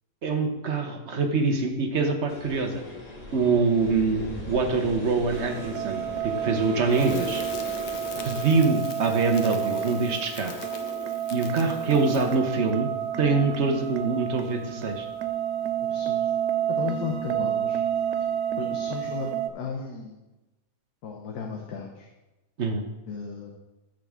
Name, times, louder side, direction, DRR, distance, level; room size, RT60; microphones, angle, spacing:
voice 1, 0.2-2.8 3.3-7.4 8.2-10.5 11.3-12.9 13.2-15.1 22.6-22.8, right 4 dB, 50° right, 5 dB, 1.0 m, -24 dB
sound 1, 2.3-8.6, left 2 dB, 25° left, 1.2 m, -38 dB
sound 2, 5.3-19.5, right 10 dB, 75° right, 1.1 m, -30 dB
Crackle, 6.9-12.6, left 6 dB, 55° left, 0.9 m, -41 dB
voice 2, 15.9-16.3 16.7-17.8 18.6-20.2 21.0-22.1 23.1-23.5, left 5 dB, 75° left, 0 dB, 1.4 m, -35 dB
13.5 x 5.2 x 3.6 m, 1.1 s
omnidirectional pair, 1.7 m